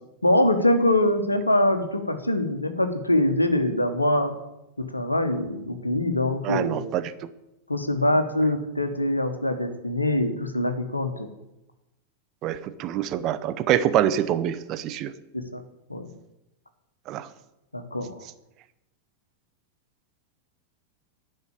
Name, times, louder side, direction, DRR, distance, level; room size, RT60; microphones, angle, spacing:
voice 1, 0.2-4.3 4.8-6.8 7.7-11.3 15.3-15.6 15.9-16.1 17.7-18.1, left 1 dB, 85° left, 8 dB, 1.2 m, -23 dB
voice 2, 6.4-7.3 12.4-15.1 17.1-17.3, right 11 dB, 35° right, 11 dB, 0.7 m, -25 dB
10.5 x 5.7 x 8.5 m, 0.91 s
figure-of-eight pair, 90°, 0 cm